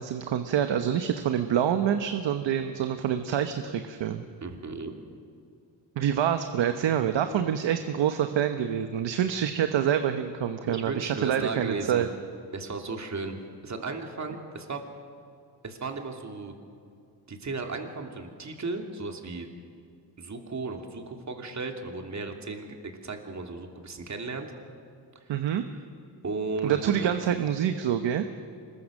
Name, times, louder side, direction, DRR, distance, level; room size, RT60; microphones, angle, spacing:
voice 1, 0.0-4.3 6.0-12.1 25.3-25.6 26.6-28.3, right 9 dB, 90° right, 8 dB, 1.2 m, -26 dB
voice 2, 4.4-4.9 10.7-12.1 12.5-14.8 15.6-16.5 17.3-19.5 20.2-24.5 25.3-25.4 26.2-27.1, right 3 dB, 40° right, 3 dB, 2.8 m, -35 dB
25.5 x 22.0 x 6.6 m, 2.3 s
cardioid pair, 105°, 43 cm